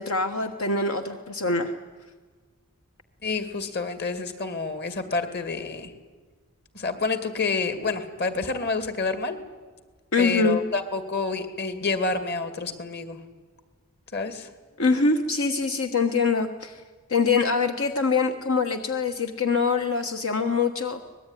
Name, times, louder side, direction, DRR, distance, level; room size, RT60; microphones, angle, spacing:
voice 1, 0.0-1.7 10.1-10.6 14.8-16.8 17.1-21.1, left 4 dB, 75° left, 6 dB, 1.4 m, -24 dB
voice 2, 3.2-5.9 6.7-9.4 10.2-13.2 14.1-14.5, left 4 dB, 50° left, 9 dB, 2.5 m, -28 dB
24.5 x 20.5 x 10.0 m, 1.4 s
head